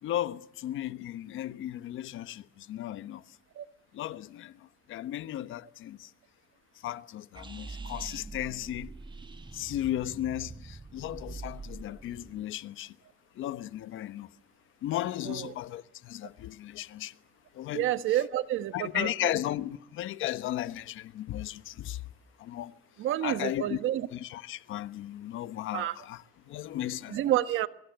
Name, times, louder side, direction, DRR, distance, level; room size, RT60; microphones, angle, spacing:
voice 1, 0.0-3.2 3.9-6.1 6.8-8.9 9.5-13.0 13.3-14.3 14.8-17.2 17.5-17.8 18.7-22.0 22.4-22.7 23.2-23.8 24.1-27.2, left 13 dB, 85° left, 1.1 m, -35 dB
sound 1, 7.3-12.4, right 3 dB, 25° right, 1.5 m, -44 dB
voice 2, 17.7-19.3 23.0-24.1 25.7-25.9 27.1-27.7, right 13 dB, 85° right, 1.4 m, -29 dB
24.0 x 23.5 x 8.0 m
cardioid pair, 90°, 20 cm